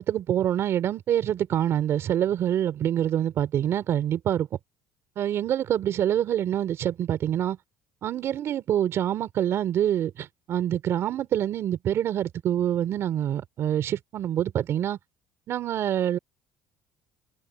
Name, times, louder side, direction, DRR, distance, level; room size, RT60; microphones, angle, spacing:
voice 1, 0.0-4.5 5.2-7.6 8.0-15.0 15.5-16.2, right 10 dB, 55° right, 3.7 m, -26 dB
cardioid pair, 110°, 6 cm